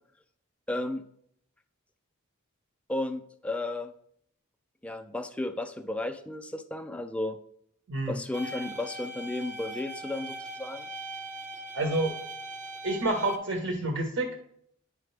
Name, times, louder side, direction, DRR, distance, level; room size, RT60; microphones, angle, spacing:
voice 1, 0.7-1.0 2.9-3.9 4.8-7.4 8.1-10.9, left 2 dB, 5° left, 7 dB, 0.3 m, -33 dB
voice 2, 7.9-8.2 11.7-12.1 12.8-14.3, right 2 dB, 65° right, 2 dB, 1.1 m, -28 dB
sound 1, 8.3-13.4, right 1 dB, 35° right, 0.8 m, -40 dB
9.6 x 4.9 x 3.3 m, 0.70 s
head